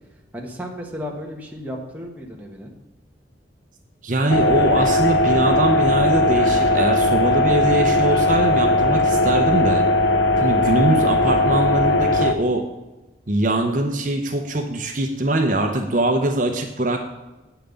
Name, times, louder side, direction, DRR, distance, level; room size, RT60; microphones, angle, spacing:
voice 1, 0.3-2.7, equal, 10° right, 0 dB, 1.3 m, -34 dB
voice 2, 4.0-9.8 10.4-12.6 13.3-17.0, right 1 dB, 45° right, 3 dB, 0.9 m, -22 dB
sound 1, 4.3-12.3, left 2 dB, 85° left, 0.8 m, -18 dB
8.7 x 5.9 x 6.9 m, 1.1 s
head